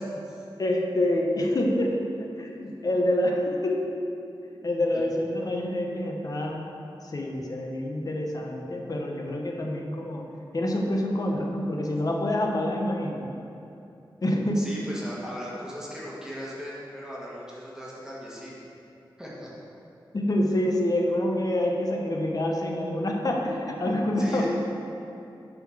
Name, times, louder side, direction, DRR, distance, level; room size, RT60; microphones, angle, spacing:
voice 1, 0.6-2.0 2.3-3.9 4.6-10.3 10.5-13.3 14.2-14.7 20.1-24.5, left 1 dB, 45° left, 0 dB, 1.0 m, -27 dB
voice 2, 14.5-18.6 19.2-19.5 20.4-20.5 24.2-24.5, equal, 5° right, -7 dB, 1.5 m, -38 dB
9.2 x 3.8 x 6.3 m, 2.8 s
wide cardioid pair, 105°, 8 cm